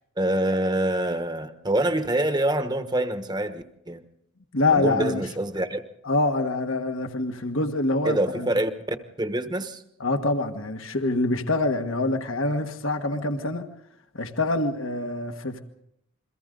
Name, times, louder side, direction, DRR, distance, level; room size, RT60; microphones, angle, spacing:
voice 1, 0.2-4.0 4.7-5.8 8.0-9.8, right 1 dB, 20° right, 1.2 m, -26 dB
voice 2, 4.5-5.2 6.0-8.5 10.0-13.7 14.1-15.6, left 2 dB, 65° left, 1.5 m, -25 dB
29.5 x 23.0 x 3.9 m
head